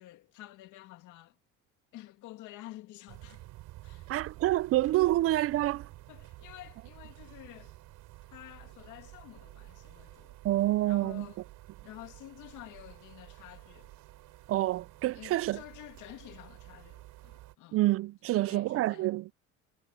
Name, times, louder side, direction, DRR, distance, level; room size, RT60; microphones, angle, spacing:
voice 1, 0.0-1.4 1.9-3.4 3.8-4.1 6.1-7.8 8.3-10.4 10.8-11.4 11.8-14.0 15.1-17.8 18.3-19.1, left 15 dB, 70° left, 2.2 m, -50 dB
sound 1, 3.1-17.6, right 17 dB, 70° right, 5.5 m, -51 dB
voice 2, 4.1-5.9 10.4-11.3 14.5-15.6 17.7-19.3, right 16 dB, 45° right, 0.4 m, -27 dB
cardioid pair, 125°, 31 cm